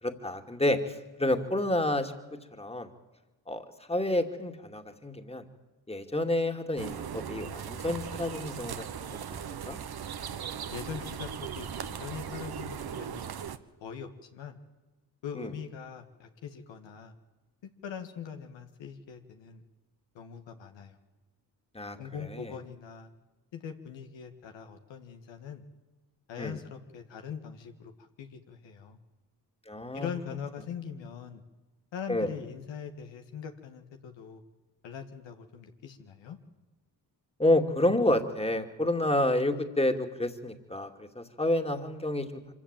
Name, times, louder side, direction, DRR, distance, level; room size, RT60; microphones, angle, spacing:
voice 1, 0.0-2.1 2.6-2.9 3.5-5.4 5.9-9.1 9.7-9.8 15.4-15.5 21.7-22.0 22.3-22.5 26.4-26.6 29.7-30.1 32.1-32.3 37.4-42.3, left 1 dB, 15° left, 5 dB, 2.5 m, -29 dB
sound 1, 6.8-13.6, right 8 dB, 55° right, 1.3 m, -38 dB
voice 2, 10.7-13.3 13.8-14.6 15.2-17.1 17.6-19.6 20.2-21.0 22.0-23.1 23.5-25.6 26.3-29.0 29.9-31.4 31.9-34.4 34.8-36.4, left 7 dB, 80° left, 5 dB, 1.9 m, -42 dB
24.5 x 15.0 x 9.0 m, 1.1 s
supercardioid pair, 55°, 43 cm